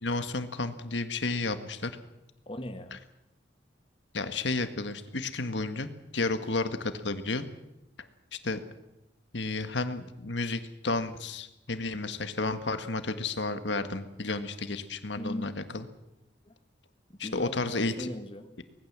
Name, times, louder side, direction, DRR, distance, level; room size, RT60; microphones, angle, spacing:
voice 1, 0.0-1.9 4.1-7.4 8.4-8.6 9.3-15.8 17.2-18.1, left 3 dB, 70° left, 10 dB, 1.7 m, -32 dB
voice 2, 2.5-3.0 15.2-15.5 16.4-16.6 17.1-18.6, left 1 dB, 30° left, 7 dB, 1.4 m, -39 dB
24.5 x 19.5 x 7.5 m, 0.89 s
head